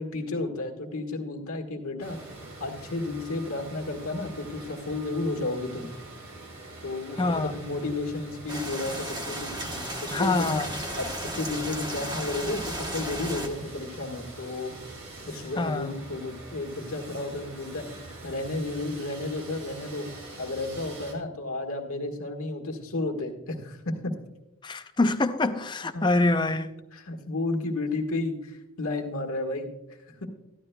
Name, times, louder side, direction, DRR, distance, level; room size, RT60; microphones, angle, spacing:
voice 1, 0.0-2.2 2.6-5.9 6.8-10.6 11.0-14.7 15.2-17.8 18.2-20.1 20.4-24.1 25.9-26.0 26.9-29.7 30.2-30.3, left 2 dB, 75° left, 1.5 m, -32 dB
sound 1, 2.0-21.1, right 2 dB, 70° right, 2.5 m, -44 dB
voice 2, 7.2-7.5 10.1-10.7 15.6-15.9 24.6-26.7, left 2 dB, 20° left, 0.4 m, -25 dB
sound 2, 8.5-13.5, right 1 dB, 20° right, 1.1 m, -34 dB
14.5 x 11.5 x 2.2 m
head